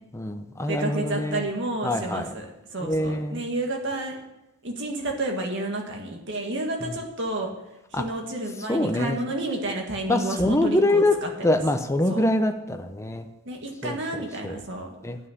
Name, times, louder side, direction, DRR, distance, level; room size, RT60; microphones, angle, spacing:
voice 1, 0.1-1.5 1.8-2.3 2.8-3.4 6.8-6.9 7.9-8.0 8.7-9.2 10.1-11.1 11.4-13.3 13.8-14.0 14.4-14.6 15.0-15.2, left 1 dB, 15° left, 6 dB, 0.7 m, -24 dB
voice 2, 0.7-2.5 2.7-4.2 4.6-7.5 7.9-11.6 12.1-12.2 13.5-14.9, right 2 dB, 55° right, 1 dB, 1.9 m, -30 dB
9.4 x 6.2 x 8.4 m, 0.92 s
head